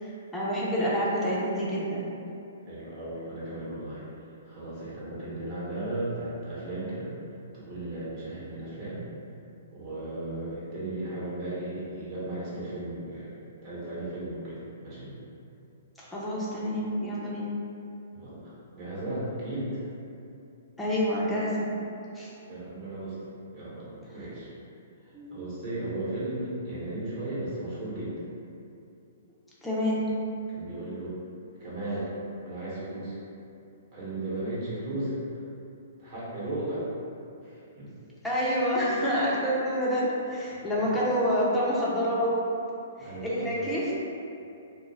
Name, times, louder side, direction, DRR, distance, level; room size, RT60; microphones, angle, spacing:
voice 1, 0.0-2.1 16.0-17.5 20.8-21.7 22.1-22.3 25.1-25.3 29.6-30.1 38.2-42.4 43.0-43.9, equal, 5° left, -8 dB, 0.5 m, -28 dB
voice 2, 2.7-4.0 4.5-7.1 7.5-9.0 9.7-15.1 18.1-19.8 22.5-23.2 23.5-24.5 25.3-28.1 30.5-31.2 31.6-32.1 32.4-33.2 33.9-35.2 36.0-36.9 37.4-37.9 40.3-40.9 43.0-43.5, right 1 dB, 40° right, -9 dB, 1.0 m, -35 dB
2.3 x 2.0 x 3.3 m, 2.7 s
hypercardioid pair, 145°, 0 cm